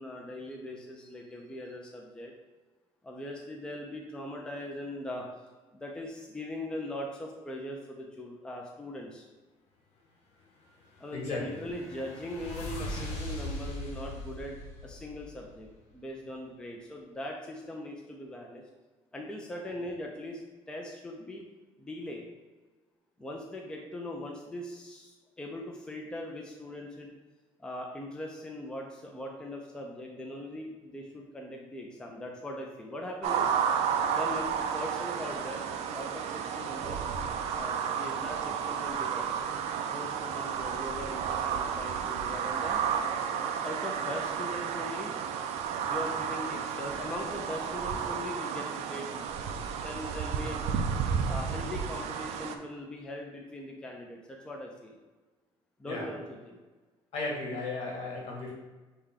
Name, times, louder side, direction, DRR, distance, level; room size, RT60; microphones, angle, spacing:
voice 1, 0.0-2.3 3.0-5.2 5.7-9.3 11.0-14.6 14.8-15.7 15.9-18.6 19.1-21.4 21.8-22.2 23.2-27.1 27.6-33.5 34.1-35.6 35.9-37.0 37.5-39.4 39.9-42.8 43.6-45.2 45.8-49.3 49.8-50.7 51.3-55.0 55.8-56.6, left 1 dB, 10° left, 0 dB, 0.4 m, -40 dB
sound 1, 10.8-15.7, left 1 dB, 85° left, 0.9 m, -40 dB
voice 2, 11.1-11.4 55.8-56.1 57.1-58.5, left 3 dB, 65° left, -2 dB, 1.5 m, -35 dB
sound 2, 33.2-52.6, right 7 dB, 80° right, 0.4 m, -32 dB
6.4 x 2.2 x 3.6 m, 1.3 s
cardioid pair, 155°, 11 cm